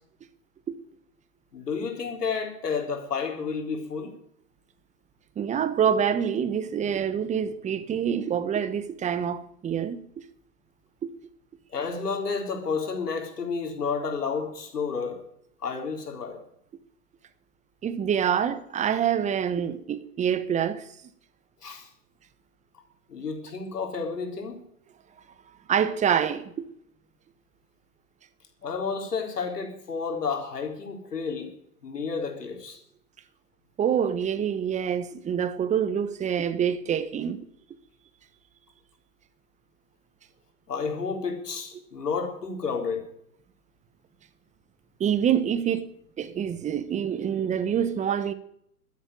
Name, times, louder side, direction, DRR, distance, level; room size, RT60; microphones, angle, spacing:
voice 1, 1.5-4.1 11.7-15.2 15.6-16.4 21.6-21.9 23.1-24.6 28.6-31.6 31.8-32.8 40.7-43.1, left 5 dB, 80° left, 3.9 m, -31 dB
voice 2, 5.4-10.0 11.0-11.1 17.8-20.9 25.7-26.5 33.8-37.4 45.0-45.9 46.2-48.3, right 8 dB, 15° right, 1.0 m, -26 dB
12.5 x 9.9 x 9.4 m
hypercardioid pair, 115°, 46 cm